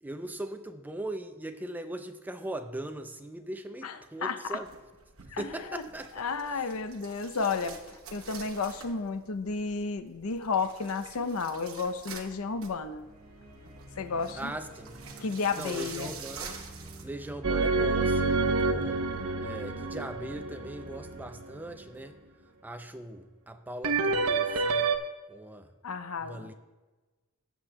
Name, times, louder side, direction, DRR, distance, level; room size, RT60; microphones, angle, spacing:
voice 1, 0.0-4.7 5.4-6.1 6.5-6.7 14.4-15.0 15.6-16.6 17.0-19.0 19.4-22.2 22.6-24.9 25.3-25.7 26.2-26.5, right 1 dB, 10° right, 8 dB, 0.4 m, -40 dB
voice 2, 4.2-4.6 5.3-5.8 6.2-13.1 14.0-14.5 15.2-16.1 25.8-26.5, left 4 dB, 70° left, 10 dB, 0.6 m, -32 dB
sound 1, 4.5-17.0, right 6 dB, 65° right, 1.1 m, -47 dB
sound 2, 12.9-23.0, right 1 dB, 45° right, 2.7 m, -49 dB
sound 3, 17.4-21.5 23.8-25.0, right 3 dB, 85° right, 0.7 m, -28 dB
17.5 x 7.3 x 2.2 m, 1.2 s
head